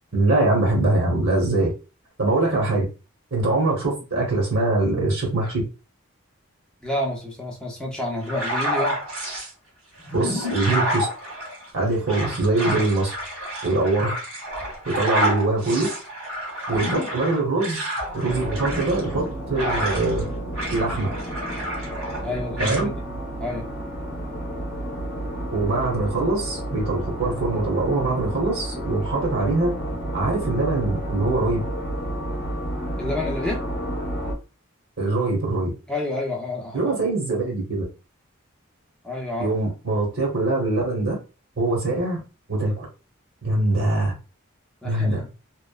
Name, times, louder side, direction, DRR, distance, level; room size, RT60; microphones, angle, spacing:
voice 1, 0.1-1.7 2.2-2.8 3.3-5.6 10.1-11.1 11.7-13.1 13.6-14.1 14.8-15.9 16.7-17.9 18.1-20.3 20.7-21.1 22.6-22.9 25.5-29.8 30.1-31.6 35.0-35.7 36.7-37.8 39.4-41.2 41.6-42.2 42.5-42.9 43.4-44.1 44.8-45.2, right 2 dB, 60° right, -2 dB, 0.9 m, -23 dB
voice 2, 6.8-9.0 22.2-22.9 23.4-23.7 33.0-33.6 35.9-37.0 39.0-39.5 44.8-45.3, left 2 dB, 5° left, -2 dB, 0.5 m, -29 dB
sound 1, 8.2-9.5 10.0-20.2 20.5-22.3 22.6-22.8, equal, 90° right, 1.5 m, -29 dB
sound 2, 18.3-34.3, right 1 dB, 50° left, 0.7 m, -31 dB
2.9 x 2.0 x 2.3 m, 0.31 s
head